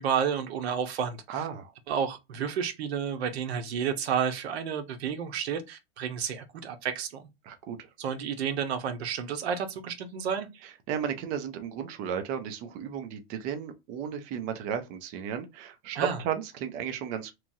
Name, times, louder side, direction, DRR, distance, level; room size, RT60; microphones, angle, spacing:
voice 1, 0.0-1.4 1.9-7.2 8.0-10.5 16.0-16.2, right 7 dB, 80° right, 0.8 m, -31 dB
voice 2, 1.3-1.7 7.4-7.9 10.6-17.3, right 8 dB, 30° right, 0.4 m, -34 dB
2.9 x 2.3 x 2.6 m
supercardioid pair, 150°, 31 cm